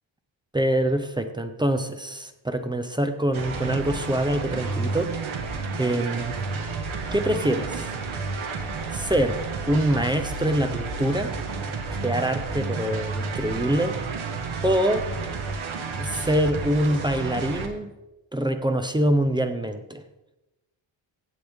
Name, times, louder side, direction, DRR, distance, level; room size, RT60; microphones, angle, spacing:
voice 1, 0.5-5.1 5.8-6.4 7.1-7.9 8.9-11.4 11.9-14.0 14.6-15.1 16.0-17.9 18.3-20.0, right 1 dB, 10° right, 8 dB, 0.5 m, -25 dB
sound 1, 3.3-17.7, right 4 dB, 90° right, 1.6 m, -31 dB
16.0 x 7.6 x 3.5 m, 0.99 s
wide cardioid pair, 165°, 47 cm